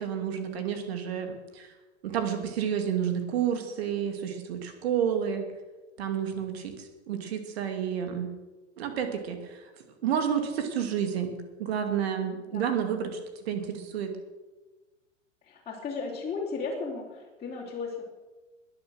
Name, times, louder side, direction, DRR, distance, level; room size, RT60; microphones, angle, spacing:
voice 1, 0.0-1.7 2.0-5.5 6.0-8.3 8.8-9.6 10.0-14.1, right 8 dB, 55° right, 6 dB, 2.6 m, -30 dB
voice 2, 15.4-18.0, left 4 dB, 15° left, -6 dB, 3.3 m, -35 dB
21.0 x 7.4 x 6.4 m, 1.2 s
figure-of-eight pair, 95°, 38 cm